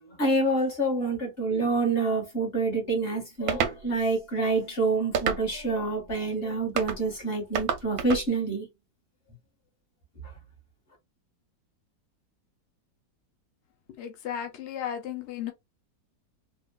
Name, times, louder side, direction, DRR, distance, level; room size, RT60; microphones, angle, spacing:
voice 1, 0.2-8.7, right 3 dB, 35° left, 1.6 m, -27 dB
sound 1, 3.5-3.8 5.1-5.7 6.8-7.0 7.5-8.3, right 7 dB, 70° right, 0.9 m, -28 dB
voice 2, 14.0-15.5, left 9 dB, 85° left, 0.6 m, -34 dB
3.6 x 2.4 x 2.2 m
omnidirectional pair, 1.9 m